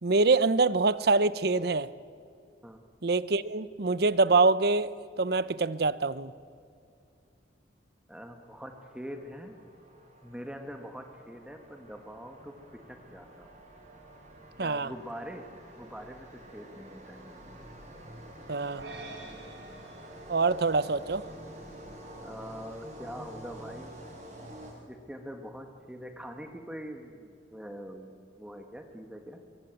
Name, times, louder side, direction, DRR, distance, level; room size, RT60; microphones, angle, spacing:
voice 1, 0.0-1.9 3.0-4.9 5.2-6.3 14.6-14.9 18.5-18.8 20.3-21.2, right 3 dB, 60° right, 17 dB, 0.7 m, -25 dB
voice 2, 8.1-9.6 10.2-13.5 14.6-15.5 15.8-17.6 18.9-19.5 22.2-23.9 24.9-29.4, equal, 5° right, 5 dB, 1.5 m, -44 dB
sound 1, 8.4-25.2, right 1 dB, 40° right, 7.4 m, -48 dB
sound 2, 18.8-21.3, right 3 dB, 75° right, 4.3 m, -47 dB
24.0 x 22.5 x 9.2 m, 2.4 s
head